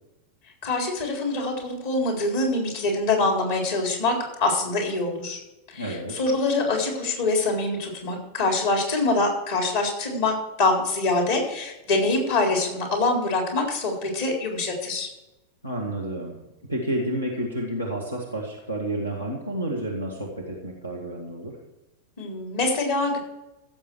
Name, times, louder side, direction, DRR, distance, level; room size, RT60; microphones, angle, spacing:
voice 1, 0.6-4.1 4.4-5.4 5.7-15.1 22.2-23.2, left 2 dB, 55° left, 1 dB, 3.9 m, -24 dB
voice 2, 5.8-6.1 15.6-16.4 16.7-21.5, right 1 dB, 90° left, -1 dB, 1.9 m, -30 dB
15.5 x 7.2 x 4.8 m, 0.97 s
figure-of-eight pair, 90°, 0 cm